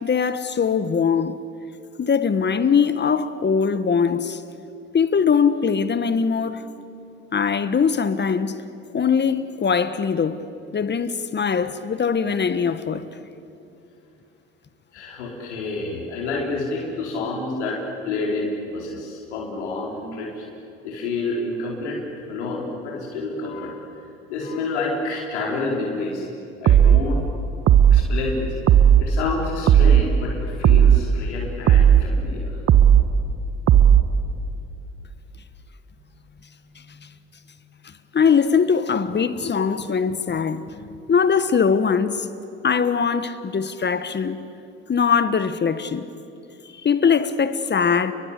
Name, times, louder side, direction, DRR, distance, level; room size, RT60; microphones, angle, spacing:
voice 1, 0.0-1.4 2.0-4.4 4.9-6.6 7.3-8.6 8.9-10.4 10.7-13.0 38.1-42.3 42.6-44.4 44.9-46.0 46.6-48.1, left 6 dB, 30° left, 1.4 m, -21 dB
voice 2, 14.9-20.4 20.8-22.0 22.3-23.8 24.3-26.3 26.6-27.2 27.9-28.5 29.0-32.6 36.0-36.1 36.5-37.2, left 3 dB, 85° left, 4.4 m, -29 dB
sound 1, 26.7-27.1 27.7-28.1 28.7-29.1 29.7-30.1 30.6-31.0 31.7-32.1 32.7-33.1 33.7-34.1, right 9 dB, 45° right, 1.3 m, -13 dB
30.0 x 23.0 x 8.3 m
hypercardioid pair, 70°, 33 cm